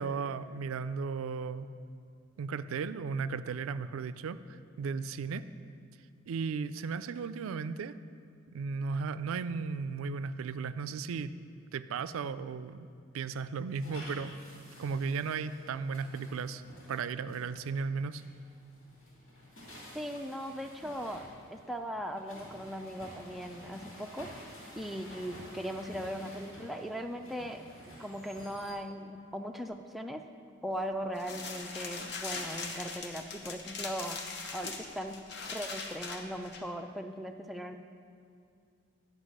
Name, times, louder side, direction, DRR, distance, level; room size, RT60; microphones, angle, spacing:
voice 1, 0.0-1.7 2.4-5.5 6.3-8.0 8.5-11.3 11.7-12.9 13.1-14.3 14.8-16.6 16.9-18.2, right 5 dB, 85° right, 14 dB, 0.4 m, -35 dB
sound 1, 13.7-28.7, equal, 75° left, 2.6 m, -51 dB
voice 2, 19.9-21.2 21.5-24.5 24.8-27.6 28.0-30.2 30.6-34.2 34.5-35.2 35.5-37.8, equal, ahead, 3 dB, 0.3 m, -39 dB
sound 2, 31.2-36.6, left 4 dB, 55° left, 0.8 m, -40 dB
9.8 x 5.3 x 6.4 m, 2.4 s
head